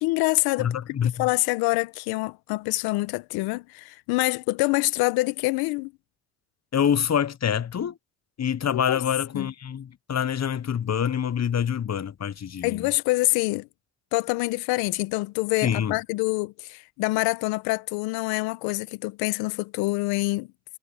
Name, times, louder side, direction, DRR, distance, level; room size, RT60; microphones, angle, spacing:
voice 1, 0.0-5.9 8.7-9.0 9.3-9.5 12.6-13.7 14.1-20.5, left 22 dB, 85° left, 1.2 m, -26 dB
voice 2, 0.6-1.3 6.7-8.0 8.4-12.9 15.6-16.0, left 8 dB, 45° left, 1.1 m, -26 dB
hypercardioid pair, 40°, 37 cm